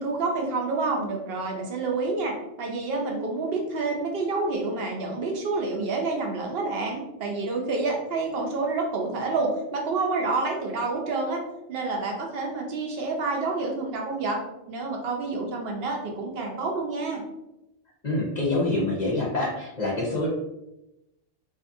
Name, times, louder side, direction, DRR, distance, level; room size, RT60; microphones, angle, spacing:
voice 1, 0.0-11.4 11.7-14.4 14.7-17.2, right 3 dB, 65° right, 1 dB, 0.8 m, -28 dB
voice 2, 18.0-20.3, left 2 dB, 50° left, -4 dB, 0.6 m, -26 dB
2.6 x 2.4 x 2.5 m, 0.90 s
omnidirectional pair, 1.2 m